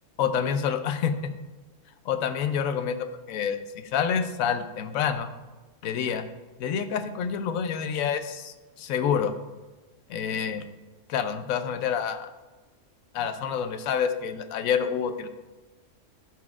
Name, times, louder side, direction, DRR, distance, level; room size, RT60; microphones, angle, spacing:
voice 1, 0.2-1.3 2.1-5.3 5.8-6.3 6.6-9.3 10.1-10.6 11.1-12.3 13.1-15.3, left 7 dB, 85° left, 10 dB, 1.0 m, -28 dB
12.0 x 4.3 x 2.4 m, 1.2 s
omnidirectional pair, 1.4 m